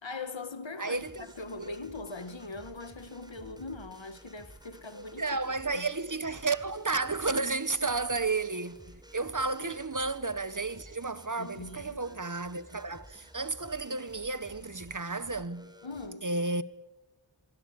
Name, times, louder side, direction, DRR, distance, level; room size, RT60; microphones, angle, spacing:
voice 1, 0.0-5.4 5.7-5.9 7.8-7.9 9.6-9.8 11.4-12.0 15.8-16.3, left 3 dB, 80° left, 2.0 m, -41 dB
voice 2, 0.8-1.3 1.6-1.7 4.9-15.7 16.2-16.6, right 3 dB, 45° right, 1.5 m, -32 dB
sound 1, 0.9-16.1, right 1 dB, 10° right, 4.5 m, -54 dB
24.5 x 24.5 x 8.7 m
wide cardioid pair, 50°, 45 cm